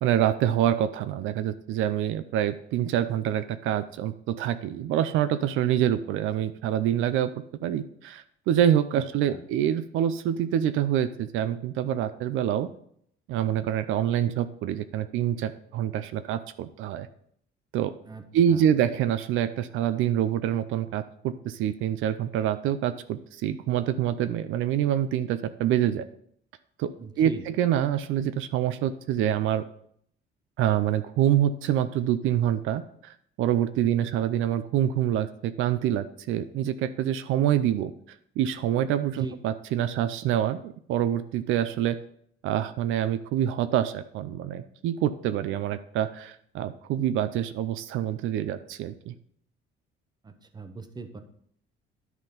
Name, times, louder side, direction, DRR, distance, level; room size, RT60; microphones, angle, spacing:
voice 1, 0.0-7.3 7.6-12.7 13.3-17.1 17.7-17.9 18.3-26.0 26.8-26.9 27.2-29.6 30.6-37.9 38.4-42.0 42.4-49.1, right 10 dB, 80° right, 12 dB, 0.5 m, -26 dB
voice 2, 8.9-9.4 18.0-18.7 27.0-27.5 33.8-33.9 39.2-39.3 50.2-51.2, right 3 dB, 20° right, 8 dB, 0.8 m, -41 dB
11.0 x 3.9 x 5.1 m, 0.65 s
cardioid pair, 130°, 20 cm